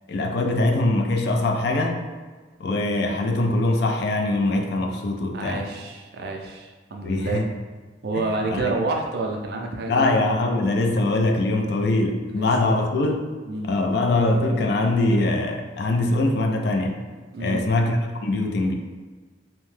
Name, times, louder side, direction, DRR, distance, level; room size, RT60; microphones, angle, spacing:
voice 1, 0.1-2.0 2.6-5.6 7.0-7.5 8.1-8.7 9.9-13.2 13.6-17.0 17.4-18.7, left 2 dB, 60° left, 3 dB, 0.3 m, -22 dB
voice 2, 5.3-7.4 8.0-10.1 12.3-12.8 13.5-13.7 17.3-17.6, right 2 dB, 55° right, 1 dB, 0.4 m, -29 dB
2.7 x 2.1 x 3.1 m, 1.4 s
head